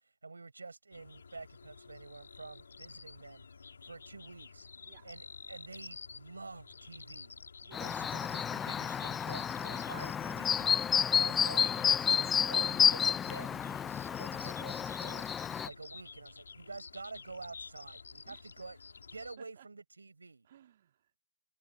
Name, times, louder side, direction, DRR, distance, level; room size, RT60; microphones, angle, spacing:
voice 1, 0.2-3.5 3.8-4.7 5.0-7.4 7.8-10.8 11.0-13.6 14.0-15.2 15.6-18.8 19.1-20.5, right 3 dB, 80° right, 4.9 m, -48 dB
sound 1, 0.9-19.4, left 5 dB, 70° left, 2.2 m, -51 dB
voice 2, 7.6-8.2 13.5-13.9 18.2-18.7 19.4-19.7 20.4-21.2, right 10 dB, 45° right, 2.2 m, -59 dB
Chirp tweet, 7.7-15.7, left 8 dB, 10° left, 0.3 m, -30 dB
figure-of-eight pair, 135°, 0 cm